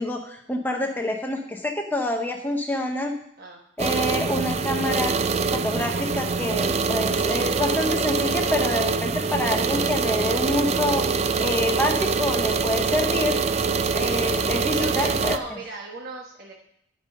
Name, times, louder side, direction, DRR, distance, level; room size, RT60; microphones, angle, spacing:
voice 1, 0.0-3.1 3.8-5.1 5.5-11.0 11.4-13.4 13.9-15.6, left 1 dB, 10° left, 2 dB, 0.7 m, -27 dB
sound 1, 3.8-15.4, right 4 dB, 35° right, 0.4 m, -24 dB
voice 2, 13.7-14.1 14.7-16.5, right 2 dB, 50° right, -1 dB, 1.2 m, -38 dB
13.0 x 5.3 x 6.5 m, 0.72 s
head